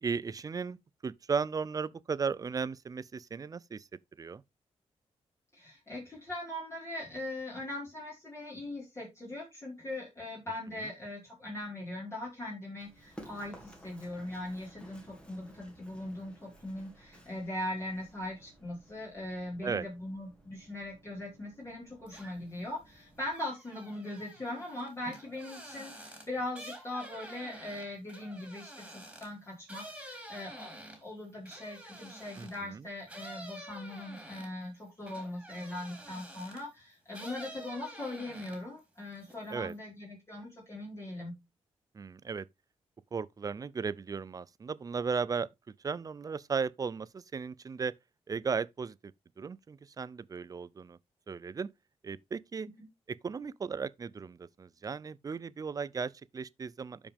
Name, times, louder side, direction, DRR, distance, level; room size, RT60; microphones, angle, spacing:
voice 1, 0.0-0.8 1.0-3.9 4.2-4.4 10.8-10.9 19.6-19.9 32.3-32.9 39.5-39.7 41.9-42.5 43.1-45.5 45.8-47.9 48.3-51.0 51.3-51.7 52.0-52.7 53.1-57.1, right 5 dB, 35° right, 0.5 m, -36 dB
voice 2, 5.5-41.3, left 1 dB, 25° left, 4.9 m, -40 dB
Run, 12.8-23.3, right 1 dB, 10° left, 2.7 m, -56 dB
sound 1, 22.1-22.6 22.9-32.7 33.1-36.7 37.1-38.8 39.1-39.8, right 1 dB, 10° right, 3.7 m, -49 dB
12.0 x 5.2 x 3.5 m
wide cardioid pair, 115°, 11 cm